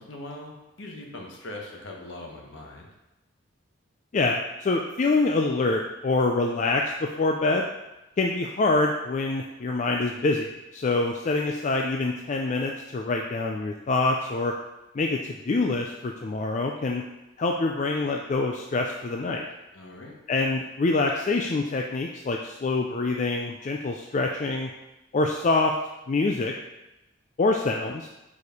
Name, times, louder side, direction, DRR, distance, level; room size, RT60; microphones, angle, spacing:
voice 1, 0.0-2.9 19.7-20.1, left 1 dB, 65° left, 0 dB, 1.4 m, -41 dB
voice 2, 4.1-7.7 8.2-14.5 14.9-17.0 17.4-19.5 20.3-24.7 25.1-25.7 26.1-26.5 27.4-28.1, left 3 dB, 35° left, 2 dB, 0.4 m, -25 dB
4.9 x 4.7 x 5.3 m, 1.0 s
head